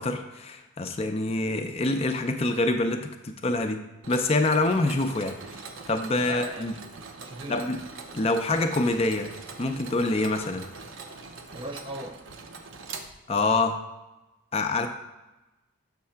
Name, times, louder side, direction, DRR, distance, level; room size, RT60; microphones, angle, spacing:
voice 1, 0.0-3.8 4.1-6.7 7.5-7.8 8.1-9.3 9.6-10.7 13.3-13.8 14.5-14.9, left 2 dB, 30° left, 6 dB, 0.4 m, -26 dB
Mechanisms, 4.0-13.6, right 4 dB, 70° right, 0.7 m, -43 dB
voice 2, 6.1-6.8 7.2-7.7 11.5-12.2 14.7-14.9, right 1 dB, 25° right, 5 dB, 0.5 m, -39 dB
7.4 x 3.2 x 5.7 m, 1.0 s
head